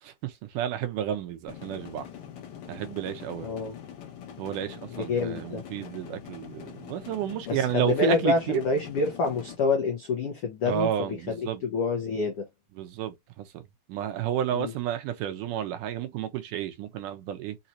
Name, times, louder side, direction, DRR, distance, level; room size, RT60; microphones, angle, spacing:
voice 1, 0.0-2.1 2.7-3.6 4.4-8.6 10.7-11.6 12.8-13.6 13.9-17.6, right 10 dB, 75° right, 2.3 m, -31 dB
sound 1, 1.5-9.6, left 9 dB, 70° left, 1.4 m, -44 dB
voice 2, 3.4-3.7 5.0-5.6 7.5-10.9 11.3-12.5 14.5-14.7, left 4 dB, 85° left, 1.2 m, -27 dB
5.8 x 2.8 x 2.6 m
omnidirectional pair, 4.0 m